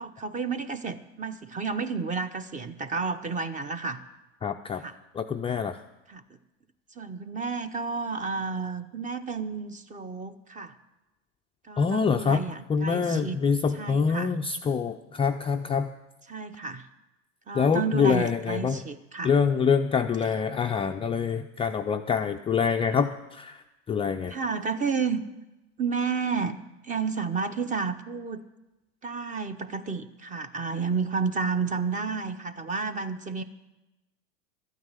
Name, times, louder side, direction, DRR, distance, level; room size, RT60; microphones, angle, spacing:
voice 1, 0.0-4.0 4.8-5.0 6.1-6.2 7.0-10.7 11.7-13.4 13.7-14.3 16.3-16.9 17.5-19.4 24.3-25.2 25.8-26.6 26.8-28.4 29.0-33.4, right 5 dB, 20° right, 11 dB, 1.0 m, -31 dB
voice 2, 4.4-4.8 5.1-5.8 11.8-12.4 12.7-15.9 17.5-18.8 19.2-23.6 23.9-24.3, left 6 dB, 15° left, 4 dB, 0.4 m, -25 dB
13.0 x 9.3 x 8.3 m, 1.0 s
supercardioid pair, 115°, 38 cm